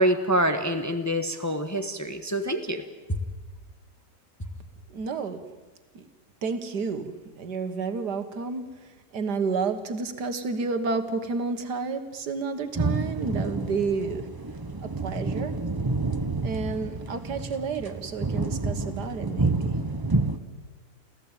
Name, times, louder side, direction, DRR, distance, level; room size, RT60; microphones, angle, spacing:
voice 1, 0.0-2.8 3.1-3.2, right 1 dB, 10° left, 6 dB, 1.1 m, -25 dB
voice 2, 4.9-5.4 5.9-6.1 6.4-14.3 14.8-15.6 16.4-19.8, right 4 dB, 70° right, 8 dB, 2.1 m, -31 dB
sound 1, 12.8-20.4, right 3 dB, 20° right, 0.7 m, -29 dB
28.0 x 15.0 x 9.0 m, 1.3 s
omnidirectional pair, 1.8 m